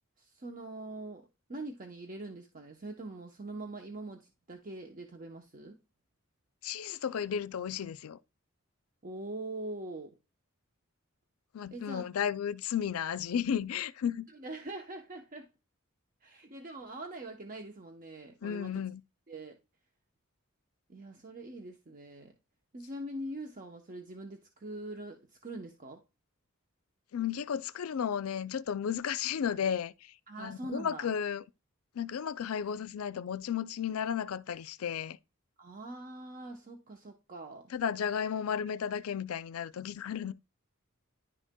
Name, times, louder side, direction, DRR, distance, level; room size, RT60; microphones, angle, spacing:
voice 1, 0.2-5.8 9.0-10.1 11.7-12.0 14.3-15.5 16.2-18.8 19.3-19.6 20.9-22.3 22.7-26.0 30.3-31.1 35.6-37.7, right 2 dB, 40° right, 0.8 m, -43 dB
voice 2, 6.6-8.2 11.5-14.3 18.4-19.0 27.1-31.4 32.0-35.2 37.7-40.3, left 8 dB, 80° left, 0.4 m, -34 dB
10.5 x 6.3 x 2.2 m
head